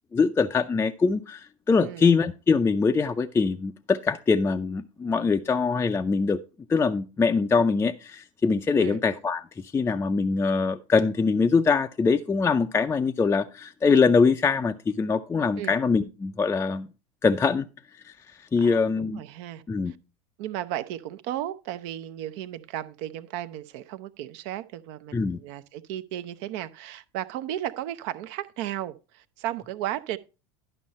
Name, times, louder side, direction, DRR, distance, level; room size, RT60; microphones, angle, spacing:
voice 1, 0.1-6.4 6.7-9.4 9.7-16.9 17.2-17.7 18.0-18.1 18.5-19.2 19.7-19.9 25.1-25.4, left 4 dB, 15° left, 0.5 m, -23 dB
voice 2, 18.6-20.0 20.4-30.2, right 12 dB, 55° right, 0.7 m, -35 dB
11.0 x 5.4 x 4.1 m
hypercardioid pair, 85°, 17 cm